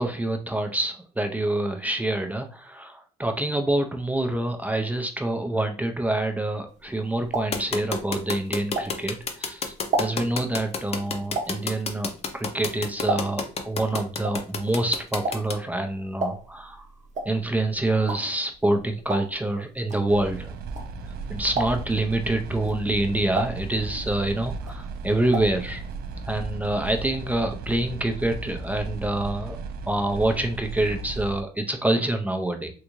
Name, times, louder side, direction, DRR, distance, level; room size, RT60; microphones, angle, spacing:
voice 1, 0.0-16.9 17.2-20.5 21.3-25.8 26.3-29.6 29.9-32.7, right 1 dB, 10° right, 5 dB, 0.5 m, -26 dB
sound 1, 6.8-9.3 9.7-13.6 13.9-21.2 21.5-22.1 22.5-24.3 24.5-25.6 25.9-26.0 26.2-26.3, right 2 dB, 45° right, 0.8 m, -32 dB
sound 2, 7.5-15.5, left 5 dB, 35° left, 0.6 m, -29 dB
sound 3, 20.1-31.4, right 3 dB, 65° right, 0.4 m, -36 dB
3.5 x 2.5 x 3.0 m, 0.38 s
cardioid pair, 110°, 17 cm